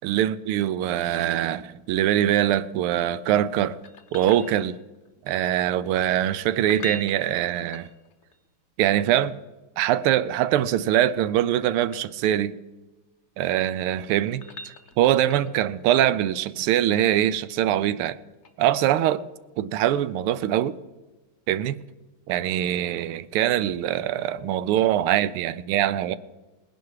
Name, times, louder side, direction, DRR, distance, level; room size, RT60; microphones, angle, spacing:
voice 1, 0.0-3.8 4.1-4.8 5.3-7.9 8.8-9.4 9.8-12.5 13.4-18.2 18.6-19.2 19.6-20.8 21.5-21.8 22.3-26.2, right 12 dB, 85° right, 1.5 m, -23 dB
sound 1, 3.8-5.1 6.5-8.4 10.5-12.2 13.6-15.7 18.4-18.5, left 2 dB, 55° left, 0.8 m, -43 dB
19.0 x 10.5 x 4.8 m
omnidirectional pair, 2.4 m